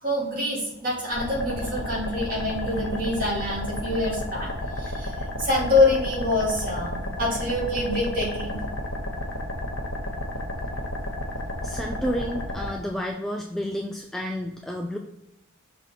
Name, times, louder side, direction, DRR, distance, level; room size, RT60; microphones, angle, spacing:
voice 1, 0.0-4.5 4.8-5.1 5.4-8.6, left 2 dB, 40° right, -5 dB, 2.4 m, -25 dB
sound 1, 1.1-12.7, left 1 dB, 70° left, 1.2 m, -32 dB
voice 2, 11.6-15.0, equal, ahead, 1 dB, 0.3 m, -30 dB
5.8 x 3.6 x 5.4 m, 0.87 s
head